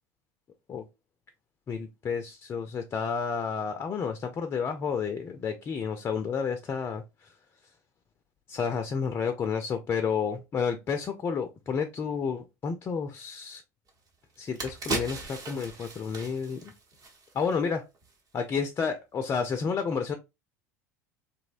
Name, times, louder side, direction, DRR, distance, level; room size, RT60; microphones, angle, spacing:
voice 1, 1.7-7.3 8.5-13.6 14.4-16.7 17.3-17.8 18.3-20.1, left 6 dB, 30° left, 0.3 m, -31 dB
sound 1, 13.9-14.0 14.4-17.6 17.9-18.1, right 3 dB, 45° right, 0.9 m, -37 dB
2.6 x 2.0 x 2.4 m
hypercardioid pair, 75°, 8 cm